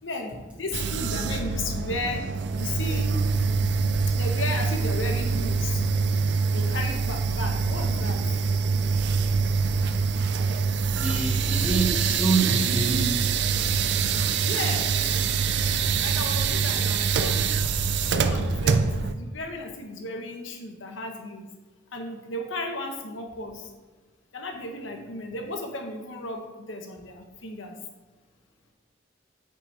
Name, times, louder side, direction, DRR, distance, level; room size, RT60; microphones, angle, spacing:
voice 1, 0.0-2.2 2.6-3.1 4.2-5.7 6.5-8.2 14.4-14.9 16.0-17.4 18.1-21.5 21.9-23.7 24.3-26.4 26.7-27.7, left 2 dB, 85° left, 3 dB, 1.2 m, -34 dB
Elevator Commands Noises, 0.7-19.1, right 5 dB, 60° right, 0.5 m, -25 dB
voice 2, 10.9-13.2, right 3 dB, 5° right, -3 dB, 1.6 m, -26 dB
9.3 x 5.9 x 3.4 m, 1.2 s
head